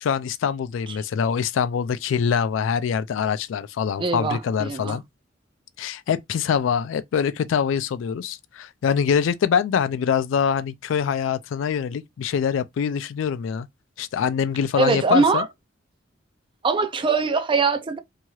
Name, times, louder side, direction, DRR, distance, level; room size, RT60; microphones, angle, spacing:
voice 1, 0.0-5.0 5.8-13.7 14.0-15.4, left 7 dB, 70° left, 0.3 m, -24 dB
voice 2, 4.0-5.0 14.8-15.5 16.6-18.0, right 4 dB, 25° right, 0.4 m, -22 dB
3.0 x 2.8 x 2.3 m
head